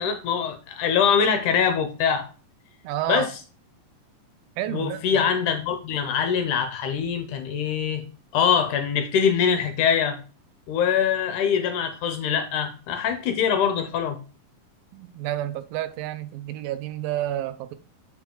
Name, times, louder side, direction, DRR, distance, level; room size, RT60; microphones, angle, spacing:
voice 1, 0.0-2.3 3.1-3.3 4.7-8.0 8.3-10.2 10.7-14.2, left 7 dB, 70° left, 2.1 m, -23 dB
voice 2, 2.8-3.3 4.6-5.3 14.9-17.7, right 13 dB, 85° right, 2.4 m, -30 dB
7.4 x 4.9 x 3.8 m
omnidirectional pair, 4.1 m